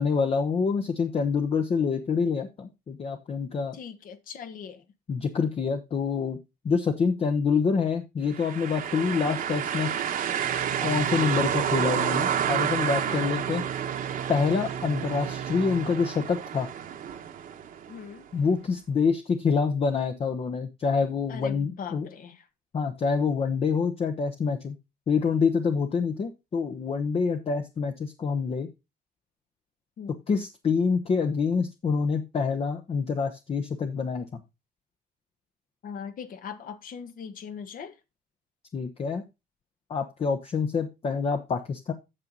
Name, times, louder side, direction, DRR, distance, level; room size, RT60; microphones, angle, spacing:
voice 1, 0.0-3.8 5.1-6.4 6.6-9.9 10.8-13.6 14.3-16.7 18.3-22.1 22.7-24.8 25.1-28.7 30.3-34.4 38.7-39.2 39.9-41.9, left 5 dB, 35° left, 0.9 m, -26 dB
voice 2, 3.7-4.8 13.0-13.3 17.9-18.3 21.3-22.5 30.0-30.2 35.8-38.0, left 7 dB, 55° left, 1.3 m, -40 dB
sound 1, 8.3-18.1, right 9 dB, 55° right, 1.3 m, -30 dB
Organ, 8.6-19.1, right 9 dB, 90° right, 0.6 m, -40 dB
8.9 x 6.8 x 3.9 m
cardioid pair, 110°, 17 cm